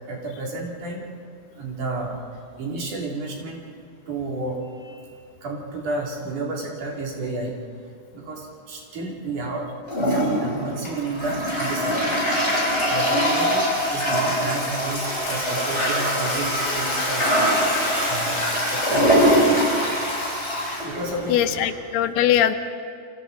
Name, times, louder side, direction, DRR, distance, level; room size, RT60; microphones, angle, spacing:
voice 1, 0.1-1.1 1.6-2.2 2.6-3.6 4.1-5.0 5.4-7.5 8.1-9.6 10.0-12.1 12.9-19.7 20.8-21.6, right 2 dB, 55° right, -2 dB, 4.1 m, -31 dB
Toilet flush, 9.9-21.7, equal, 15° left, 7.6 m, -23 dB
voice 2, 21.3-22.6, left 11 dB, 85° left, 10 dB, 2.9 m, -21 dB
29.5 x 25.5 x 4.0 m, 2.3 s
omnidirectional pair, 4.5 m